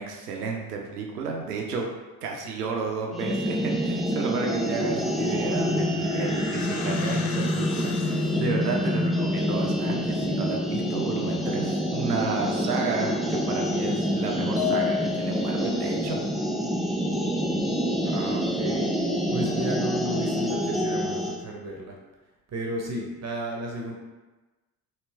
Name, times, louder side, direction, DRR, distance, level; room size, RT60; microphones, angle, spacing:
voice 1, 0.0-1.9 2.2-16.2, right 4 dB, 85° right, 1 dB, 0.7 m, -32 dB
sound 1, 3.1-21.4, equal, ahead, 0.3 m, -27 dB
sound 2, 5.2-8.6, left 6 dB, 50° left, 0.6 m, -39 dB
sound 3, 14.6-15.7, left 10 dB, 85° left, 1.0 m, -29 dB
voice 2, 18.0-22.0 22.5-24.0, right 1 dB, 35° right, 0 dB, 0.9 m, -34 dB
4.2 x 2.9 x 3.4 m, 1.2 s
hypercardioid pair, 55°, 45 cm